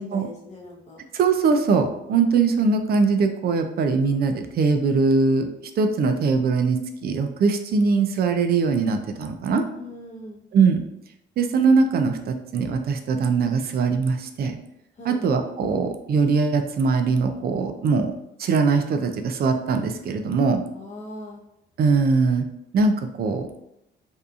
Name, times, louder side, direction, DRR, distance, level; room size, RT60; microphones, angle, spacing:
voice 1, 0.0-1.0 9.8-10.4 15.0-15.3 20.7-21.4, left 1 dB, 35° left, -2 dB, 0.8 m, -40 dB
voice 2, 1.1-5.5 5.8-9.6 10.5-10.8 11.4-14.6 15.0-18.1 18.4-20.6 21.8-22.5 22.7-23.5, right 4 dB, 50° right, 7 dB, 0.4 m, -21 dB
2.7 x 2.3 x 2.4 m, 0.79 s
cardioid pair, 90°, 20 cm